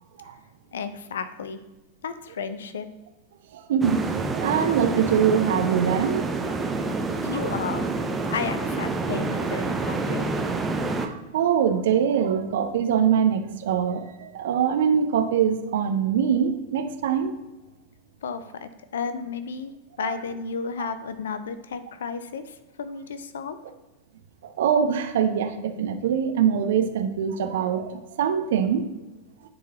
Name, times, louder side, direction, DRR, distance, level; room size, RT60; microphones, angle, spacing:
voice 1, 0.7-1.6 2.0-2.9 7.2-7.9 8.3-10.3 18.2-19.7 20.0-23.6, left 6 dB, 65° left, 11 dB, 0.5 m, -33 dB
voice 2, 3.5-4.0 4.3-6.3 6.8-6.9 7.3-7.5 11.0-17.3 20.0-20.2 20.8-20.9 24.4-28.9, right 8 dB, 60° right, 8 dB, 0.6 m, -23 dB
sound 1, 3.8-11.1, right 3 dB, 15° right, 0.6 m, -28 dB
10.0 x 3.9 x 2.9 m, 1.1 s
figure-of-eight pair, 90°, 0 cm